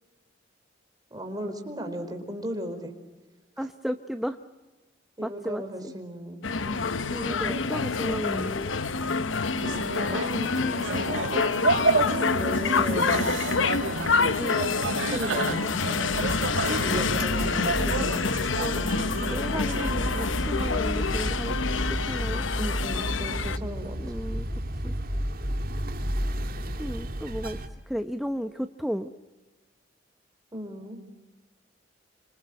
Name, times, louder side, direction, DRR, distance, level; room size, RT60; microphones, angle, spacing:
voice 1, 1.1-2.9 3.6-3.7 5.2-6.8 7.3-7.6 9.6-11.4 12.3-13.4 14.8-15.8 16.7-18.3 18.8-19.0 22.6-24.0 30.5-31.0, right 1 dB, 20° right, 5 dB, 4.6 m, -36 dB
voice 2, 3.6-4.4 5.2-5.9 7.1-8.7 14.4-14.6 18.6-18.8 19.3-22.5 24.0-24.5 24.8-24.9 26.8-29.1, equal, ahead, 7 dB, 0.8 m, -34 dB
sound 1, 6.4-23.6, left 4 dB, 85° left, 1.0 m, -27 dB
sound 2, 9.5-20.3, right 3 dB, 90° right, 1.7 m, -31 dB
sound 3, 16.1-27.7, equal, 50° right, 2.5 m, -32 dB
28.5 x 26.0 x 7.7 m, 1.2 s
head